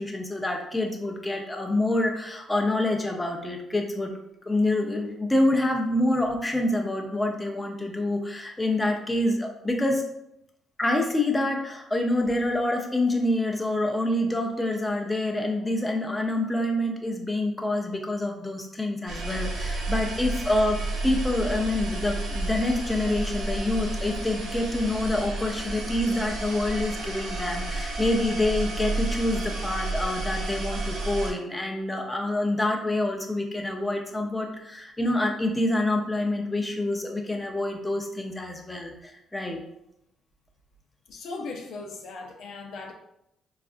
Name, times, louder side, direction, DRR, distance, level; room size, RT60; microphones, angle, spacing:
voice 1, 0.0-4.1 4.5-10.0 10.8-20.8 21.0-39.6, left 1 dB, 10° left, 1 dB, 0.5 m, -27 dB
sound 1, 19.1-31.3, right 2 dB, 90° right, 0.8 m, -31 dB
voice 2, 41.1-42.9, left 3 dB, 75° left, 3 dB, 0.4 m, -38 dB
3.8 x 2.4 x 2.5 m, 0.80 s
cardioid pair, 90°, 0 cm